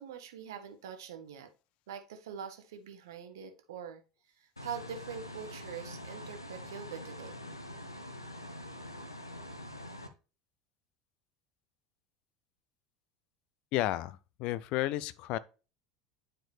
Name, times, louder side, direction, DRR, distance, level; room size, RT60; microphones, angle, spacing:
voice 1, 0.0-1.5 1.9-4.0 4.4-7.4, right 7 dB, 65° right, 1.0 m, -44 dB
sound 1, 4.6-10.1, left 1 dB, 90° left, 0.6 m, -45 dB
voice 2, 13.7-15.4, left 14 dB, 50° left, 0.4 m, -32 dB
8.8 x 4.5 x 3.3 m
figure-of-eight pair, 75°, 2 cm